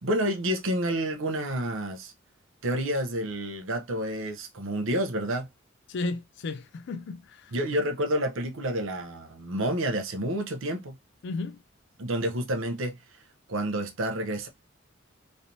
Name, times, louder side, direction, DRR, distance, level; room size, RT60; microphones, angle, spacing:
voice 1, 0.0-2.1 2.6-5.5 7.5-10.9 12.0-13.0 13.5-14.5, right 1 dB, 80° right, 0.8 m, -29 dB
voice 2, 5.9-7.6 11.2-11.6, left 3 dB, 60° left, 0.4 m, -34 dB
3.2 x 2.8 x 2.6 m
head